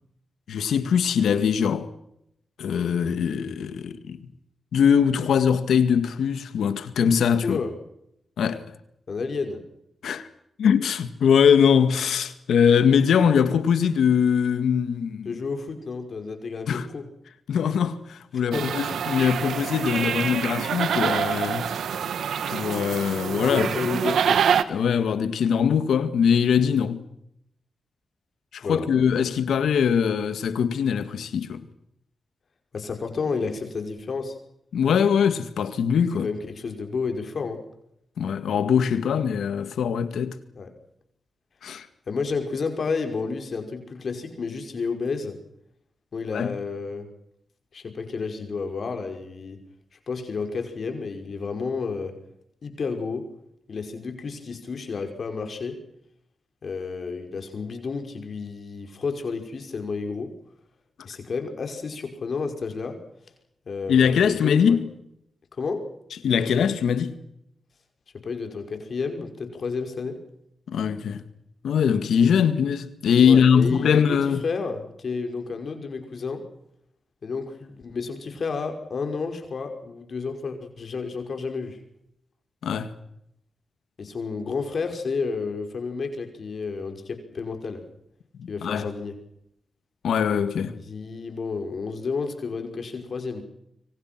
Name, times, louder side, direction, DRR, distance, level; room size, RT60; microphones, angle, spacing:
voice 1, 0.5-1.9 2.6-4.2 4.7-7.6 8.4-8.6 10.0-10.3 10.6-15.4 16.7-16.9 17.5-21.7 22.5-23.7 24.7-27.0 28.5-31.7 34.7-36.3 38.2-40.4 41.6-41.9 46.3-46.5 63.9-64.9 66.2-67.2 70.7-71.2 71.6-74.4 82.6-82.9 88.4-88.9 90.0-90.8, left 7 dB, 90° left, 2.0 m, -22 dB
voice 2, 7.4-7.7 9.1-9.6 15.3-17.0 18.3-18.7 23.5-24.4 28.6-28.9 32.7-34.4 36.2-37.6 40.6-40.7 42.1-45.4 46.1-47.1 47.7-49.6 50.1-52.1 52.6-53.3 53.7-55.8 56.6-60.3 61.0-63.0 63.7-64.8 65.6-65.9 68.2-70.2 73.2-76.4 77.2-81.8 84.0-87.8 88.5-89.1 90.7-93.4, left 4 dB, 65° left, 5.5 m, -31 dB
sound 1, 18.5-24.6, right 8 dB, 90° right, 1.4 m, -26 dB
26.5 x 25.0 x 6.1 m
cardioid pair, 65°, 0 cm